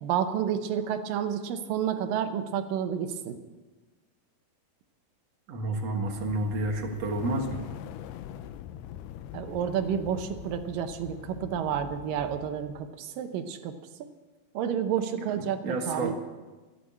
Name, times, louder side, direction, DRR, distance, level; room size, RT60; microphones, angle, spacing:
voice 1, 0.0-3.4 9.3-13.7 14.5-16.1, right 8 dB, 75° right, 7 dB, 2.2 m, -30 dB
voice 2, 5.5-7.6 15.6-16.1, right 2 dB, 55° right, 2 dB, 2.1 m, -30 dB
sound 1, 5.9-12.9, left 11 dB, 80° left, 2.4 m, -43 dB
14.0 x 8.9 x 8.4 m, 1.3 s
omnidirectional pair, 4.8 m